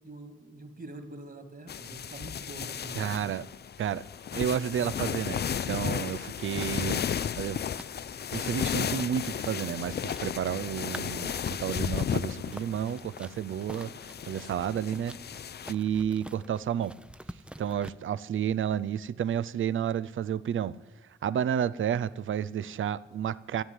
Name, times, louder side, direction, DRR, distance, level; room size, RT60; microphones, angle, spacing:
voice 1, 0.0-3.4, right 2 dB, 50° right, 2.4 m, -45 dB
sound 1, 1.7-15.7, left 8 dB, 55° left, 0.4 m, -34 dB
voice 2, 2.9-3.5 3.8-4.0 4.3-7.0 7.4-7.6 8.3-13.9 14.3-15.1 15.7-16.9 17.6-20.7 21.2-23.6, right 9 dB, 80° right, 0.5 m, -31 dB
sound 2, 6.6-17.9, right 1 dB, 5° right, 0.6 m, -48 dB
13.0 x 9.6 x 9.2 m
cardioid pair, 55°, 20 cm